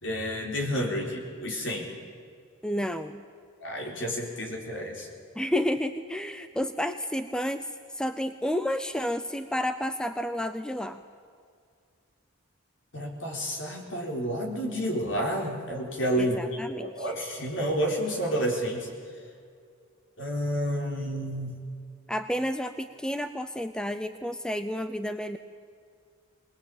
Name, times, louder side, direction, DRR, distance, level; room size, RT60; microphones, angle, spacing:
voice 1, 0.0-1.9 3.6-5.1 12.9-16.4 16.8-18.9 20.2-21.6, equal, 60° left, 1 dB, 4.2 m, -30 dB
voice 2, 2.6-3.2 5.4-11.0 16.2-17.1 22.1-25.4, equal, 5° left, 10 dB, 0.5 m, -31 dB
22.0 x 20.0 x 8.6 m, 2.2 s
head